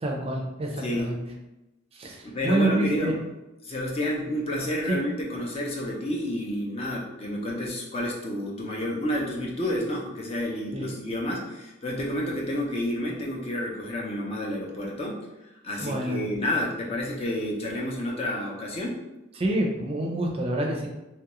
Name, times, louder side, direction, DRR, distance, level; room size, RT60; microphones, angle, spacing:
voice 1, 0.0-1.2 1.9-3.1 4.9-5.0 10.7-10.9 15.8-16.2 19.4-20.9, right 1 dB, 30° right, 1 dB, 0.5 m, -27 dB
voice 2, 0.8-1.2 2.2-3.2 3.6-15.3 15.6-19.0, left 1 dB, 30° left, -2 dB, 0.5 m, -30 dB
3.0 x 2.4 x 2.9 m, 0.98 s
head